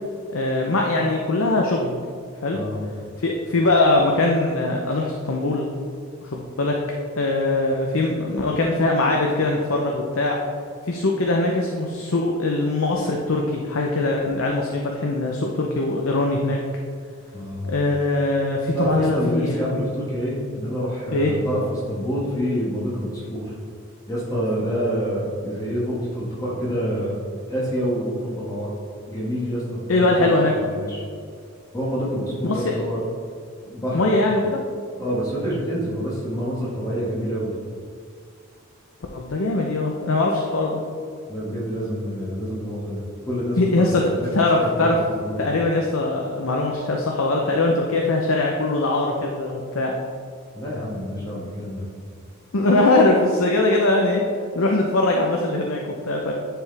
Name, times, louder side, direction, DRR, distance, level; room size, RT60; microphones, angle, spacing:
voice 1, 0.3-2.0 2.4-2.6 3.2-5.7 6.2-6.8 7.2-10.4 10.8-16.6 17.6-19.6 21.1-21.3 29.9-30.5 32.4-32.8 33.9-34.6 39.1-40.8 43.6-44.0 44.3-45.0 45.4-49.9 52.5-54.2 54.5-56.3, left 2 dB, 70° left, 0 dB, 0.7 m, -21 dB
voice 2, 17.3-17.7 18.7-23.5 24.1-27.1 27.5-28.7 29.1-30.3 30.6-31.0 31.7-33.0 33.6-34.0 35.0-37.9 41.3-44.3 44.6-45.5 50.5-51.9, equal, 15° left, -6 dB, 1.6 m, -27 dB
10.0 x 4.7 x 3.4 m, 2.2 s
head